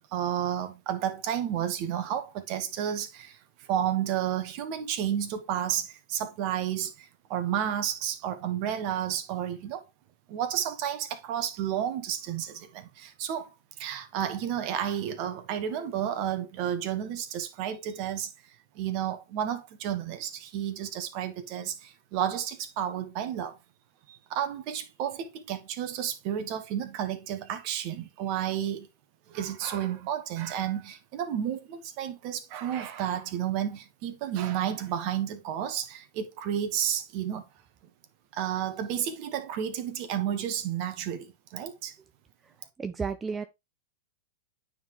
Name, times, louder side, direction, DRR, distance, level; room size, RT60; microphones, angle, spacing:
voice 1, 0.1-3.4 3.7-9.8 10.3-13.5 13.8-18.3 18.7-23.6 24.1-28.9 29.3-37.4 38.3-41.9, right 10 dB, 50° right, 1.2 m, -31 dB
voice 2, 42.8-43.5, right 5 dB, 15° right, 0.5 m, -32 dB
9.2 x 3.9 x 3.0 m
hypercardioid pair, 105°, 0 cm